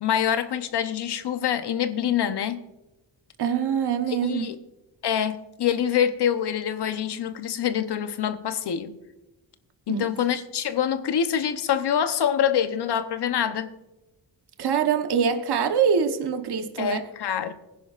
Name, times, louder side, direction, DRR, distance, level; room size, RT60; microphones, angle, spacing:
voice 1, 0.0-2.6 4.1-4.6 5.0-9.0 9.9-13.7 16.8-17.5, left 9 dB, 65° left, 0.9 m, -25 dB
voice 2, 3.4-4.4 9.9-10.1 14.6-17.0, right 7 dB, 60° right, 1.1 m, -24 dB
20.0 x 10.5 x 2.5 m
cardioid pair, 100°, 44 cm